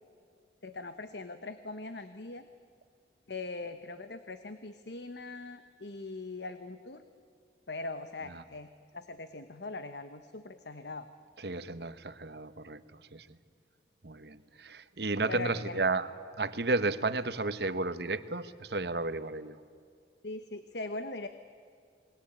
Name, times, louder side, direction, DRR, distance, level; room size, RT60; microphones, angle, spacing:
voice 1, 0.6-2.4 3.3-7.0 7.7-11.1 15.3-15.8 20.2-21.3, left 3 dB, 70° left, 10 dB, 1.1 m, -41 dB
voice 2, 11.4-12.8 13.1-13.3 14.0-16.1 16.3-19.6, right 3 dB, 65° right, 13 dB, 1.1 m, -32 dB
28.5 x 21.5 x 8.8 m, 2.3 s
head